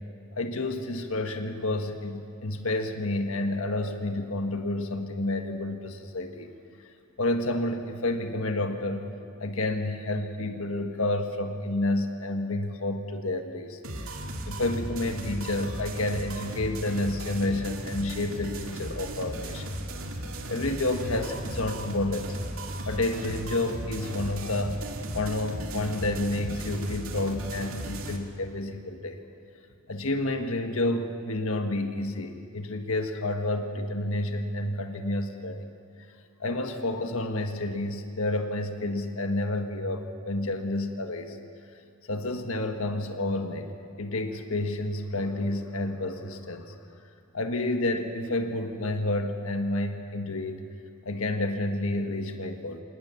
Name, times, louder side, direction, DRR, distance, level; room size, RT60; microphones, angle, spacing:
voice 1, 0.4-6.5 7.2-9.1 9.4-13.8 14.5-19.7 20.5-22.4 22.8-24.8 25.1-29.2 29.9-35.6 36.4-41.4 42.0-43.7 44.0-46.7 47.3-50.6 51.0-52.8, left 2 dB, 75° left, 6 dB, 1.5 m, -30 dB
sound 1, 13.8-28.2, right 1 dB, 70° right, 2.2 m, -36 dB
26.5 x 19.0 x 7.1 m, 2.4 s
head